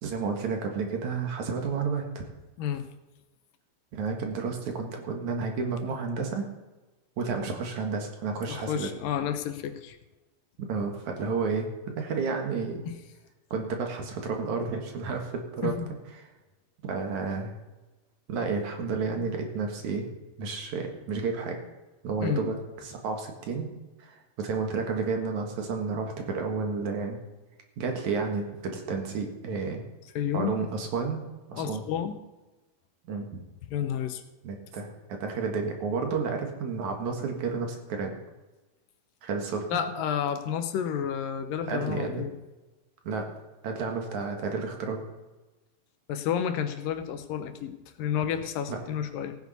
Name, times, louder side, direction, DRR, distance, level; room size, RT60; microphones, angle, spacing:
voice 1, 0.0-2.2 3.9-6.5 7.2-8.9 10.6-11.7 12.0-12.8 13.5-15.7 16.9-17.5 18.3-20.1 20.4-21.6 22.0-22.6 22.8-23.7 24.0-27.2 27.8-29.8 30.3-31.2 31.5-31.8 33.0-33.4 34.4-38.1 39.2-39.8 41.7-42.3 43.1-43.3 43.6-45.0 48.7-48.8, right 4 dB, 65° right, 3 dB, 2.8 m, -31 dB
voice 2, 8.5-10.0 12.9-13.0 15.6-15.9 22.2-22.5 30.2-30.5 31.6-32.2 33.7-34.2 39.7-42.3 46.1-49.4, left 9 dB, 80° left, 9 dB, 2.6 m, -30 dB
16.5 x 9.4 x 4.1 m, 1.1 s
omnidirectional pair, 3.9 m